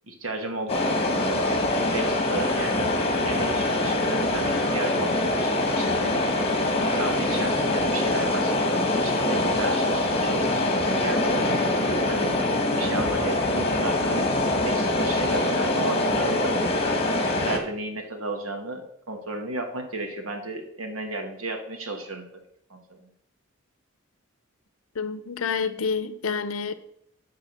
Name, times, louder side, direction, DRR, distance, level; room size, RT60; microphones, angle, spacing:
voice 1, 0.1-6.3 6.8-8.7 9.0-12.3 12.8-16.4 16.8-17.0 17.4-22.4 22.7-23.1, right 2 dB, 90° right, 1.7 m, -34 dB
sound 1, 0.7-17.6, left 1 dB, 30° left, 1.5 m, -24 dB
voice 2, 25.0-26.7, left 5 dB, 85° left, 0.6 m, -28 dB
10.0 x 4.0 x 6.7 m
head